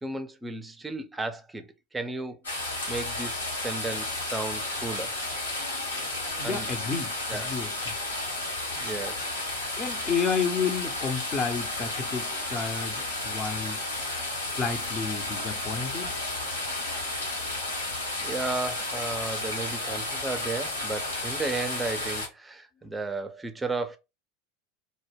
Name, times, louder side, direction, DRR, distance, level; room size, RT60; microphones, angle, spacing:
voice 1, 0.0-5.2 6.4-6.7 7.3-7.5 8.8-9.4 18.2-24.0, right 3 dB, 10° right, 0.5 m, -34 dB
sound 1, 2.4-22.3, left 2 dB, 85° left, 0.9 m, -32 dB
voice 2, 6.4-7.9 9.8-13.8 14.5-16.1, left 5 dB, 30° left, 0.6 m, -31 dB
2.1 x 2.1 x 3.3 m
figure-of-eight pair, 80°, 0 cm